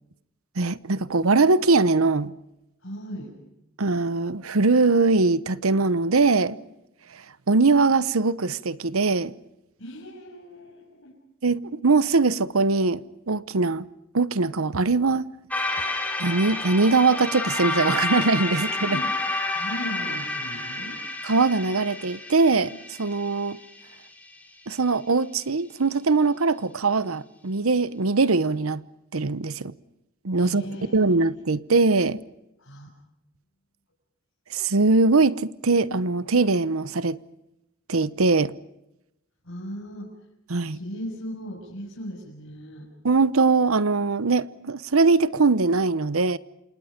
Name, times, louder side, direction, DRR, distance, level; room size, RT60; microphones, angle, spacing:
voice 1, 0.6-2.3 3.8-6.6 7.5-9.3 11.4-13.8 14.1-15.2 15.8-15.9 16.2-19.0 21.2-23.6 24.7-28.8 29.1-29.7 30.2-30.6 30.9-32.2 34.5-37.2 37.9-38.5 40.5-40.8 43.0-46.4, right 3 dB, 80° right, 0.9 m, -21 dB
voice 2, 2.8-3.3 9.8-11.1 18.8-19.1 19.4-21.0 30.3-31.0 32.6-32.9 39.4-40.1 40.7-42.9, equal, 65° left, 6.7 m, -37 dB
sound 1, 15.5-24.0, left 2 dB, 5° left, 4.8 m, -30 dB
29.0 x 27.0 x 5.2 m
head